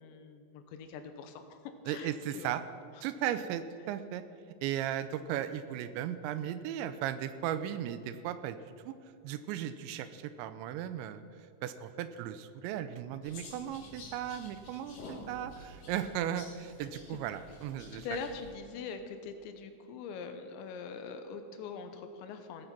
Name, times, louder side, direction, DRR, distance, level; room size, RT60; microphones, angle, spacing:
voice 1, 0.0-1.6 1.9-2.5 14.5-14.7 17.1-17.2 17.9-22.7, left 5 dB, 80° left, 7 dB, 3.1 m, -43 dB
voice 2, 1.9-2.6 3.0-4.2 4.6-8.6 8.9-9.0 9.2-11.2 11.6-18.1, right 10 dB, 85° right, 12 dB, 2.8 m, -36 dB
sound 1, 13.2-18.5, left 1 dB, 45° left, 3.1 m, -50 dB
17.0 x 9.1 x 5.8 m, 2.4 s
omnidirectional pair, 5.4 m